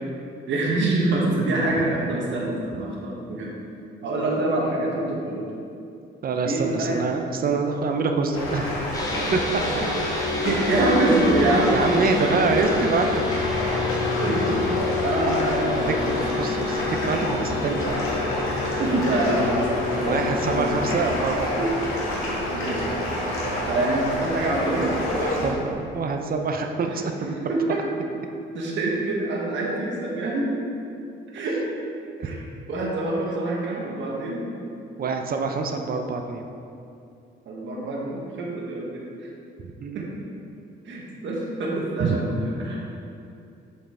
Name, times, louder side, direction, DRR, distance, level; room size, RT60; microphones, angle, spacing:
voice 1, 0.5-3.5 4.0-5.4 6.4-6.9 9.6-9.7 10.4-11.7 12.1-12.4 14.2-14.7 15.0-16.2 18.8-20.2 20.5-20.8 21.6-21.7 22.5-23.1 23.4-25.0 25.4-25.5 26.9-27.0 27.3-27.8 28.5-30.5 31.3-31.6 32.2-32.4 32.7-34.4 37.5-39.3 39.9-40.2 40.8-42.8, right 2 dB, 70° right, -3 dB, 1.3 m, -25 dB
voice 2, 6.2-8.7 9.3-9.9 11.7-13.2 15.7-15.8 16.4-18.1 20.0-21.5 25.2-27.4 32.2-32.4 35.0-36.5 39.8-40.1 42.0-42.2, right 4 dB, 50° right, 4 dB, 0.6 m, -26 dB
sound 1, 8.3-25.5, left 1 dB, 90° left, 1.6 m, -28 dB
sound 2, 8.9-26.3, left 6 dB, 20° left, 1.1 m, -31 dB
6.5 x 5.5 x 3.8 m, 2.6 s
cardioid pair, 90°, 20 cm